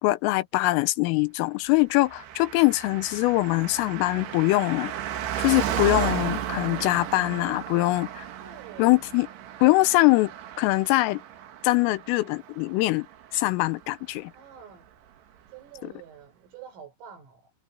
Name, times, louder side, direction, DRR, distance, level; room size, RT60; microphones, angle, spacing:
voice 1, 0.0-4.9 5.4-8.2 8.8-9.3 9.6-10.3 10.6-11.2 11.6-13.1 13.3-14.3 15.8-15.9, left 21 dB, 90° left, 3.4 m, -23 dB
Car passing by, 2.1-13.9 14.2-14.3, right 10 dB, 65° right, 3.5 m, -34 dB
voice 2, 8.4-9.0 14.3-14.9 15.5-17.5, right 8 dB, 80° right, 7.6 m, -47 dB
omnidirectional pair, 5.8 m